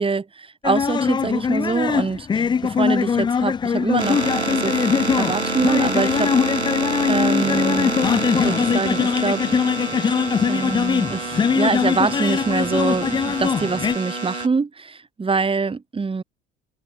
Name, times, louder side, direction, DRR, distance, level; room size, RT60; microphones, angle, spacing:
voice 1, 0.0-4.8 5.1-6.3 7.1-7.9 8.4-9.4 10.5-16.2, right 4 dB, 15° right, 2.0 m, -24 dB
sound 1, 0.6-14.0, left 6 dB, 15° left, 0.4 m, -22 dB
sound 2, 4.0-14.5, right 2 dB, 90° right, 4.8 m, -27 dB
figure-of-eight pair, 65°, 32 cm